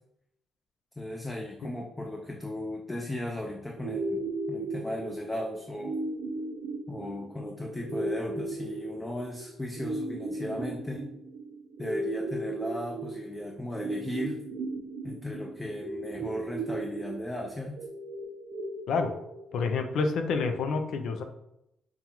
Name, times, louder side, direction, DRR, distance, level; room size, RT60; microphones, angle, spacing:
voice 1, 1.0-5.9 6.9-11.1 11.8-14.4 15.0-17.8, left 1 dB, 15° left, 1 dB, 0.4 m, -36 dB
sound 1, 3.8-19.8, right 2 dB, 80° right, 0.5 m, -36 dB
voice 2, 19.5-21.2, left 4 dB, 75° left, 6 dB, 0.5 m, -28 dB
5.3 x 2.3 x 3.0 m, 0.83 s
cardioid pair, 90°, 0 cm